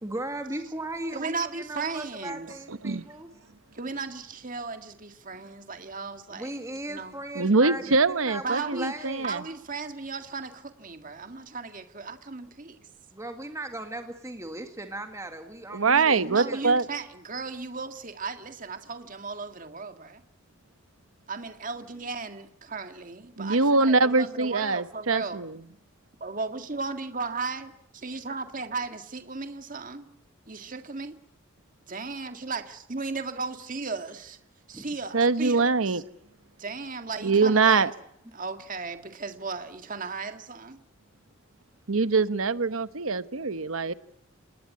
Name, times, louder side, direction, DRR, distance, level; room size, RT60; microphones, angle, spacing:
voice 1, 0.0-3.3 6.3-9.3 13.1-16.8 34.7-34.9, right 1 dB, 15° right, 6 dB, 2.0 m, -37 dB
voice 2, 1.1-2.5 3.7-6.6 6.9-7.1 7.8-8.0 8.4-12.8 15.9-20.2 21.3-25.4 26.2-30.1 30.5-31.2 31.9-34.4 34.7-36.0 36.6-37.9 38.3-40.8, right 4 dB, 40° right, 8 dB, 1.8 m, -36 dB
voice 3, 7.4-9.4 15.7-16.8 23.4-25.6 35.1-36.0 37.2-37.9 41.9-43.9, right 4 dB, 90° right, 14 dB, 1.1 m, -23 dB
27.5 x 20.0 x 9.5 m, 0.78 s
head